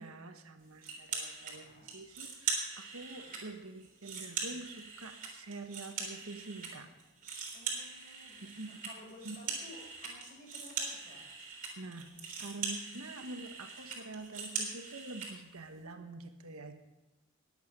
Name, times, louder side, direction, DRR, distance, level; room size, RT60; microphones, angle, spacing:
voice 1, 0.0-6.9 8.4-8.8 9.2-9.4 11.8-16.7, right 3 dB, 85° right, 6 dB, 1.3 m, -46 dB
sound 1, 0.8-1.5 1.9-3.4 3.8-6.7 7.0-15.3, right 5 dB, 40° right, 3.7 m, -41 dB
voice 2, 1.5-1.9 3.0-3.4 7.5-11.2, left 1 dB, 35° left, -2 dB, 5.6 m, -55 dB
21.5 x 8.1 x 5.3 m, 1.1 s
head